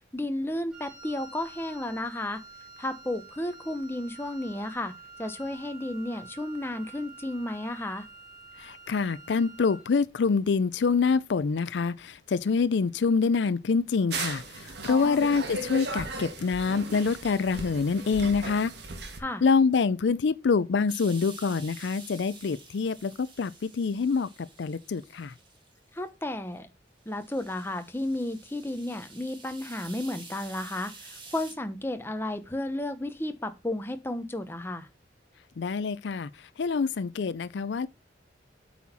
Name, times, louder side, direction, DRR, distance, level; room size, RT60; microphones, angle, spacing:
voice 1, 0.1-2.4 2.8-4.9 5.2-8.1 14.9-15.3 19.2-19.4 25.9-26.7 27.1-34.9, left 1 dB, 15° left, 0.8 m, -33 dB
Wind instrument woodwind instrument, 0.7-10.0, right 3 dB, 5° right, 2.3 m, -48 dB
voice 2, 8.6-18.7 19.4-24.3 24.6-25.3 35.6-36.3 36.6-37.9, left 5 dB, 75° left, 0.4 m, -26 dB
sound 1, 14.1-19.2, right 2 dB, 65° right, 1.6 m, -37 dB
sound 2, 20.9-26.1 26.5-26.6 27.0-31.5, right 3 dB, 25° right, 2.1 m, -49 dB
8.4 x 4.3 x 4.2 m
head